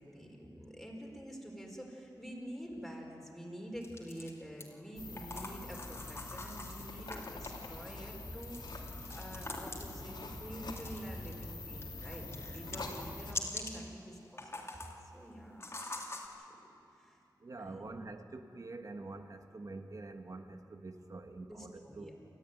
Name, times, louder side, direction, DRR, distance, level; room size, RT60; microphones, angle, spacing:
voice 1, 0.0-8.6 9.1-14.8 15.1-16.1 16.4-16.6 17.0-17.2 17.6-18.0 21.4-22.1, equal, ahead, -1 dB, 4.6 m, -47 dB
sound 1, 3.8-4.7 5.2-7.5 8.4-10.0 10.7-11.4 11.7-13.8 14.2-15.0 15.6-16.3, left 2 dB, 35° left, 2.7 m, -44 dB
sound 2, 5.0-13.3, left 2 dB, 85° left, 3.0 m, -45 dB
voice 2, 17.4-22.1, right 3 dB, 50° right, 6 dB, 1.5 m, -46 dB
29.5 x 14.0 x 9.4 m, 2.8 s
wide cardioid pair, 90°, 8 cm